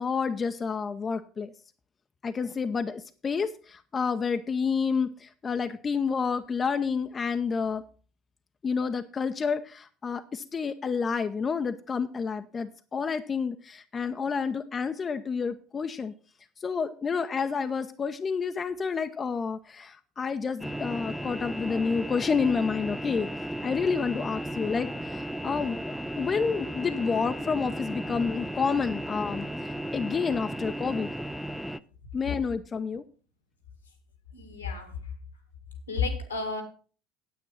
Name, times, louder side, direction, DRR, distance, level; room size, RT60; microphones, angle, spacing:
voice 1, 0.0-1.5 2.2-7.8 8.6-16.1 16.6-23.3 23.6-31.1 32.1-33.0, left 5 dB, 30° left, 9 dB, 0.7 m, -29 dB
sound 1, 20.6-31.8, equal, 5° right, 0.5 m, -35 dB
voice 2, 34.3-35.0 35.9-36.6, left 4 dB, 85° left, 8 dB, 2.0 m, -31 dB
9.4 x 8.6 x 5.6 m, 0.38 s
figure-of-eight pair, 65°, 0 cm